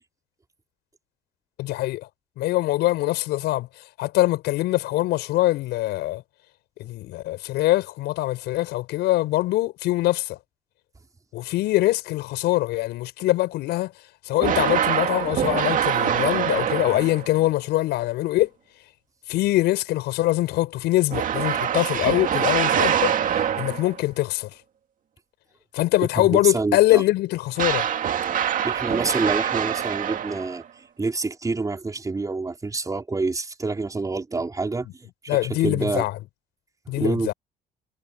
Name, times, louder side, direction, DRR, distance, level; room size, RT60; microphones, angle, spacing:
voice 1, 1.6-2.1 2.4-3.7 4.0-6.2 6.8-10.4 11.3-13.9 14.3-18.5 19.3-23.2 23.5-24.5 25.7-27.9 35.3-36.1 36.9-37.3, left 17 dB, 85° left, 6.4 m, -23 dB
sound 1, 14.4-17.4 21.1-24.0 27.6-30.7, right 9 dB, 55° right, 2.1 m, -24 dB
voice 2, 26.1-27.0 28.6-30.6 31.0-36.0 36.9-37.3, right 3 dB, 20° right, 5.0 m, -27 dB
cardioid pair, 110°, 17 cm